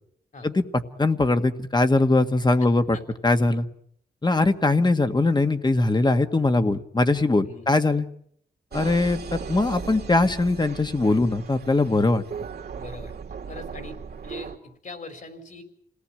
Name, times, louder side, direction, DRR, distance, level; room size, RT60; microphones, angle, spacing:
voice 1, 1.0-3.0 3.2-3.7 4.2-8.1 8.7-9.2 9.5-12.2, left 2 dB, 25° left, 8 dB, 1.8 m, -21 dB
sound 1, 8.7-14.6, right 6 dB, 80° right, 2.4 m, -37 dB
voice 2, 12.7-14.0 14.2-15.6, left 3 dB, 55° left, 8 dB, 4.8 m, -41 dB
27.5 x 18.5 x 9.0 m, 0.68 s
cardioid pair, 85°, 16 cm